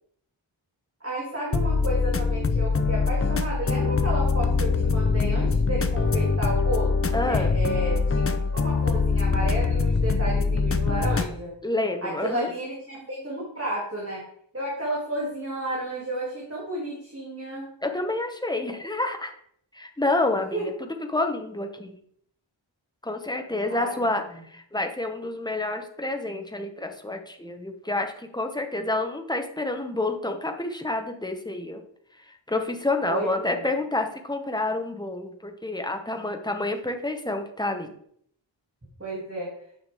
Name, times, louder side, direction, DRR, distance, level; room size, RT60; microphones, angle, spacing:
voice 1, 1.0-11.5 12.0-14.2 14.5-17.7 20.5-20.7 23.7-24.2 33.0-33.6 39.0-39.5, right 1 dB, 30° right, -5 dB, 2.5 m, -32 dB
sound 1, 1.5-11.3, left 4 dB, 30° left, 0.6 m, -23 dB
voice 2, 7.1-7.5 11.6-12.5 17.8-19.3 19.7-20.7 21.1-21.9 23.0-24.2 24.5-31.8 32.5-37.9, left 2 dB, 10° left, 4 dB, 1.0 m, -28 dB
9.1 x 6.3 x 3.5 m, 0.66 s
wide cardioid pair, 80°, 48 cm